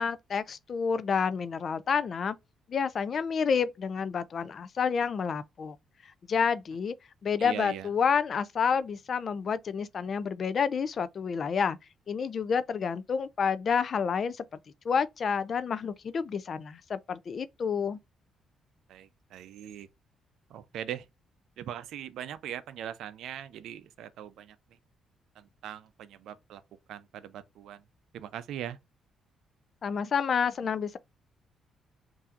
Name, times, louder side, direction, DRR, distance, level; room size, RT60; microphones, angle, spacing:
voice 1, 0.0-2.4 2.7-5.7 6.3-6.9 7.2-11.8 12.1-14.4 14.8-18.0 29.8-31.0, left 6 dB, 50° left, 0.4 m, -29 dB
voice 2, 7.4-7.9 18.9-19.9 20.5-21.1 21.6-24.6 25.4-26.6 26.9-27.8 28.1-28.8, right 10 dB, 80° right, 0.5 m, -40 dB
5.6 x 2.6 x 2.4 m
cardioid pair, 90°, 0 cm